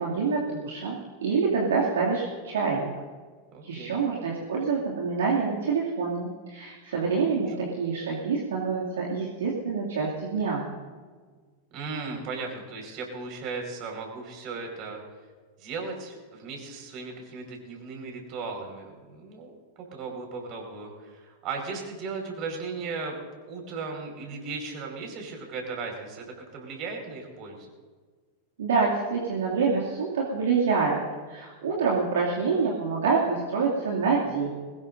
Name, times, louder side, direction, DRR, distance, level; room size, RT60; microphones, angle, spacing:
voice 1, 0.0-2.9 3.6-10.6 28.6-31.0 31.3-34.5, right 5 dB, 65° right, -3 dB, 2.4 m, -26 dB
voice 2, 3.5-4.0 7.6-7.7 11.7-15.0 15.6-19.5 19.8-23.2 23.5-26.3 26.5-27.7, right 4 dB, 40° right, 2 dB, 4.9 m, -36 dB
22.0 x 19.5 x 2.6 m, 1.5 s
figure-of-eight pair, 90°, 0 cm